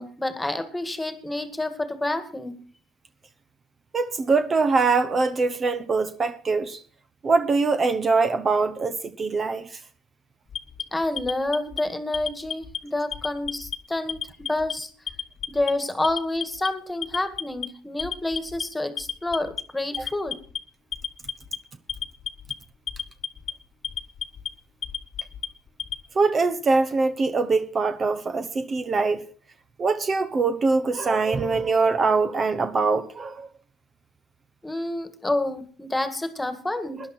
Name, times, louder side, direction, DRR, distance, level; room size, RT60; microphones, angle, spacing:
voice 1, 0.0-2.6 10.9-14.9 15.5-20.4 34.6-37.0, left 2 dB, 10° left, 1.9 m, -28 dB
voice 2, 3.9-6.8 7.2-9.7 26.1-29.2 29.8-33.5, right 4 dB, 35° right, 1.0 m, -23 dB
Alarm, 10.5-11.8 12.1-12.8 13.1-13.8 14.1-14.7 15.1-15.7 16.0-16.7 17.0-17.7 18.0-18.6 19.0-19.6 19.9-20.6 20.9-21.6 21.9-22.5 22.9-23.5 23.8-24.5 24.8-26.0, left 8 dB, 45° left, 1.2 m, -32 dB
17.5 x 11.0 x 4.3 m
supercardioid pair, 80°, 0 cm